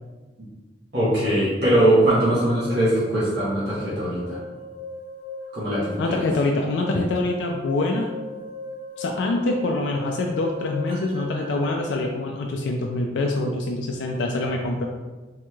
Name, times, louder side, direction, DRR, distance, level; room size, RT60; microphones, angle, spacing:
voice 1, 0.9-4.4 5.5-6.2, right 1 dB, 65° right, -10 dB, 1.1 m, -21 dB
sound 1, 2.0-11.6, left 2 dB, 30° right, 0.4 m, -38 dB
voice 2, 6.0-8.1 9.0-14.8, left 2 dB, 80° left, 1 dB, 0.3 m, -25 dB
3.6 x 3.0 x 2.2 m, 1.3 s
head